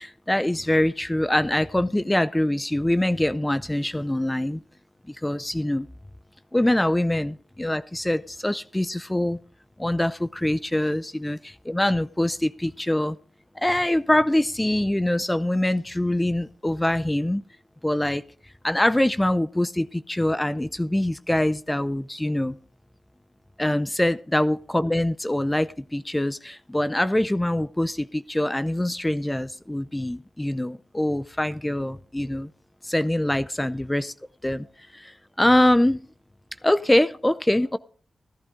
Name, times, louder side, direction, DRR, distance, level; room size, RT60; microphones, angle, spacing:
voice 1, 0.0-4.6 5.1-5.9 6.5-9.4 9.8-13.1 13.6-17.4 17.8-18.2 18.6-22.6 23.6-32.5 32.8-34.1 34.4-34.7 34.9-36.0 36.6-37.8, left 1 dB, 15° left, 14 dB, 0.6 m, -24 dB
14.0 x 12.0 x 3.6 m, 0.42 s
cardioid pair, 45°, 0 cm